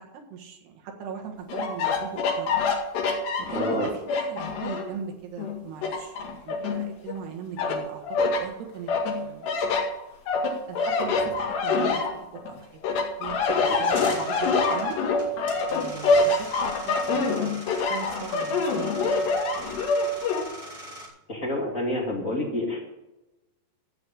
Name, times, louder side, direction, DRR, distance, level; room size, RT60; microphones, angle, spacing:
voice 1, 0.3-2.5 3.4-8.9 9.2-9.5 10.7-12.0 12.3-12.8 13.2-15.0 15.7-19.3, right 7 dB, 75° right, 2 dB, 3.7 m, -39 dB
sound 1, 1.5-5.0 5.4-7.2 7.6-8.4 8.9-12.5 12.8-20.4, left 3 dB, 80° left, 4.2 m, -25 dB
voice 2, 3.5-3.9 14.0-14.1 21.3-22.8, left 1 dB, 25° left, -2 dB, 2.2 m, -28 dB
sound 2, 13.7-21.1, equal, 10° right, 2.7 m, -42 dB
15.0 x 5.4 x 8.7 m, 0.97 s
omnidirectional pair, 4.8 m